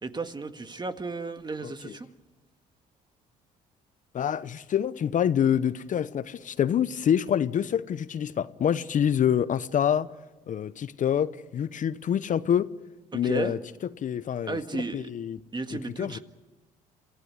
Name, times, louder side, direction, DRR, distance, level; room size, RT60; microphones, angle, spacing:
voice 1, 0.0-2.1 13.1-13.5 14.4-15.1 15.5-16.2, right 3 dB, 25° right, 1.8 m, -34 dB
voice 2, 4.1-10.1 10.5-12.7 13.1-13.6 14.0-15.4 16.0-16.2, left 9 dB, 50° left, 0.8 m, -26 dB
27.0 x 15.5 x 9.7 m
supercardioid pair, 70°, 17 cm